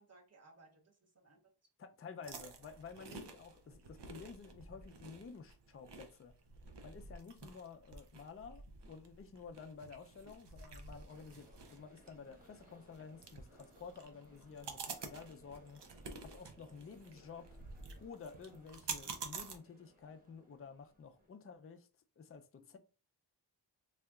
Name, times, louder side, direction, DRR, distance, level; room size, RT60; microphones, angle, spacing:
voice 1, 0.0-1.5 10.9-11.0 16.0-16.3 22.6-22.8, right 2 dB, 35° right, 0.8 m, -63 dB
voice 2, 1.8-6.3 6.8-15.8 16.2-17.6 18.0-21.9 22.2-22.8, left 5 dB, 35° left, 0.4 m, -52 dB
sound 1, 2.2-19.6, right 4 dB, 80° right, 0.6 m, -50 dB
sound 2, 11.1-21.3, right 1 dB, 20° right, 1.1 m, -65 dB
3.4 x 2.8 x 2.3 m
wide cardioid pair, 55°, 41 cm